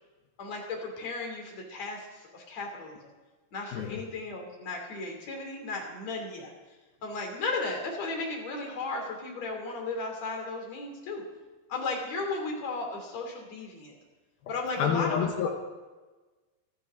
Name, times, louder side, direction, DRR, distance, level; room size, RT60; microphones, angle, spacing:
voice 1, 0.4-3.1 3.5-6.5 7.0-11.2 11.7-13.9 14.5-15.5, left 3 dB, 40° left, 1 dB, 3.7 m, -35 dB
voice 2, 3.7-4.1 14.5-15.5, left 7 dB, 75° left, 3 dB, 2.2 m, -29 dB
27.5 x 12.5 x 3.8 m, 1.2 s
omnidirectional pair, 5.9 m